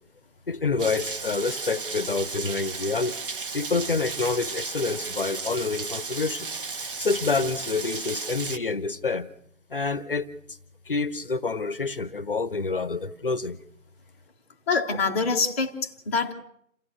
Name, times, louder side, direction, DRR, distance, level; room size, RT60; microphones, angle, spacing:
voice 1, 0.5-3.2 3.5-6.5 7.0-9.3 9.7-10.6 10.9-13.6, left 4 dB, 45° left, 17 dB, 0.9 m, -27 dB
Rain, 0.8-8.6, right 4 dB, 40° right, 1.4 m, -34 dB
voice 2, 14.7-16.3, left 4 dB, 10° left, -3 dB, 1.0 m, -25 dB
28.0 x 16.0 x 6.6 m, 0.73 s
figure-of-eight pair, 150°, 40 cm